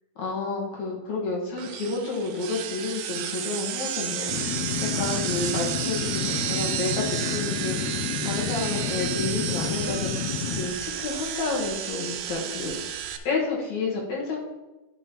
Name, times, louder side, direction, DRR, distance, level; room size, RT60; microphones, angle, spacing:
voice 1, 0.2-8.0 8.2-12.8 13.2-14.5, left 3 dB, 60° left, -3 dB, 2.6 m, -30 dB
sound 1, 1.6-13.2, right 10 dB, 80° right, 2.1 m, -32 dB
sound 2, 4.3-10.7, left 8 dB, 80° left, 1.7 m, -30 dB
10.5 x 6.9 x 2.9 m, 1.1 s
omnidirectional pair, 3.8 m